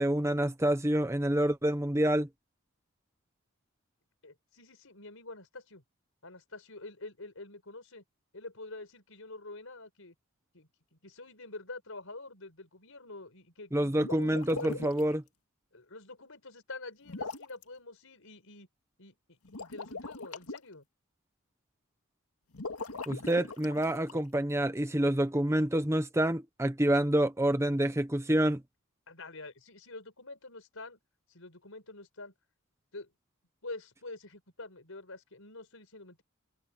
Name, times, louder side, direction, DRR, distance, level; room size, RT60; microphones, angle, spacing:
voice 1, 0.0-2.3 13.7-15.2 23.1-28.6, right 1 dB, 15° right, 0.9 m, -27 dB
voice 2, 4.2-5.8 6.2-8.0 8.3-10.1 10.5-15.1 15.7-18.7 19.0-20.9 29.1-31.0 31.3-32.3 32.9-33.1 33.6-36.2, left 2 dB, 65° left, 5.8 m, -47 dB
sound 1, 13.9-15.1 17.1-17.6 19.5-20.6 22.5-24.2, left 3 dB, 90° left, 2.1 m, -40 dB
head